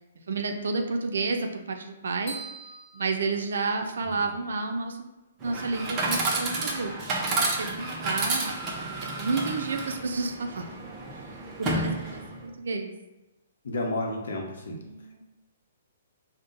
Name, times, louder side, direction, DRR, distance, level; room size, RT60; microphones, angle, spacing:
voice 1, 0.3-2.3 2.9-5.1 5.4-6.9 7.5-10.6 11.6-12.9 14.8-15.2, right 3 dB, 80° right, 4 dB, 0.4 m, -31 dB
sound 1, 2.3-4.2, right 3 dB, 30° left, 1.0 m, -43 dB
voice 2, 4.0-4.3 13.6-14.8, left 1 dB, 80° left, 0 dB, 0.8 m, -32 dB
Chatter / Coin (dropping), 5.4-12.4, right 2 dB, 20° right, 0.5 m, -31 dB
5.3 x 2.1 x 2.5 m, 1.0 s
hypercardioid pair, 165°, 0 cm